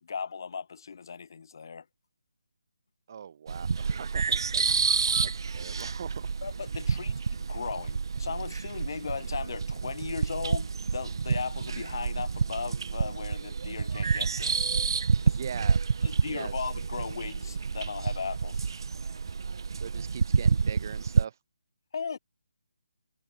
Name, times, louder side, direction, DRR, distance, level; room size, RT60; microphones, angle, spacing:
voice 1, 0.0-1.9 6.4-14.6 15.2-15.4 16.0-18.7 21.9-22.2, left 6 dB, 50° left, 3.6 m, -37 dB
voice 2, 3.1-4.7 4.9-6.4 6.7-6.9 15.3-15.8 16.3-16.5 19.8-21.4, right 8 dB, 35° right, 5.3 m, -41 dB
sound 1, 3.5-21.2, right 5 dB, 55° right, 0.8 m, -29 dB
hypercardioid pair, 165°, 3 cm